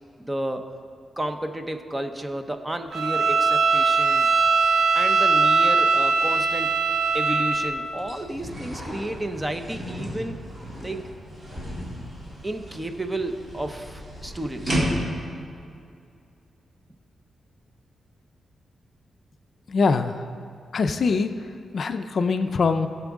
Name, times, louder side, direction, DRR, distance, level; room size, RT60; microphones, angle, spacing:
voice 1, 0.2-0.7 1.2-4.3 4.9-6.7 7.1-10.4 10.8-11.1 12.4-14.8, right 1 dB, 10° right, 7 dB, 0.6 m, -32 dB
Bowed string instrument, 2.9-7.8, right 4 dB, 55° right, 0.7 m, -20 dB
sound 1, 6.5-6.6 7.0-15.3, equal, 30° right, 2.7 m, -33 dB
voice 2, 19.7-20.2 20.7-21.3 21.7-22.9, left 4 dB, 50° left, 8 dB, 0.4 m, -23 dB
17.5 x 7.0 x 3.6 m, 2.4 s
wide cardioid pair, 145°, 0 cm